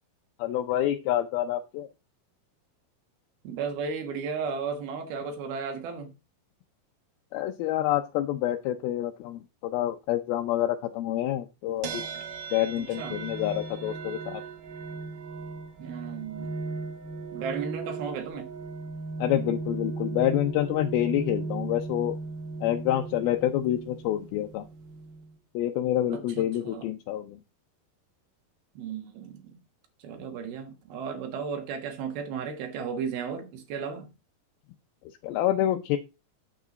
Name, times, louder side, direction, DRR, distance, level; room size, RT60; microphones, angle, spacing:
voice 1, 0.4-1.9 7.3-12.0 12.5-14.4 19.2-22.2 22.6-24.6 25.5-27.4 35.2-36.0, left 12 dB, 85° left, 2.6 m, -27 dB
voice 2, 3.4-6.1 12.8-13.2 15.8-16.6 17.3-18.5 26.1-26.9 28.8-29.6 30.0-34.1, right 6 dB, 85° right, 3.4 m, -35 dB
sound 1, 11.8-25.4, right 4 dB, 65° right, 2.5 m, -37 dB
9.1 x 7.5 x 3.9 m
omnidirectional pair, 4.3 m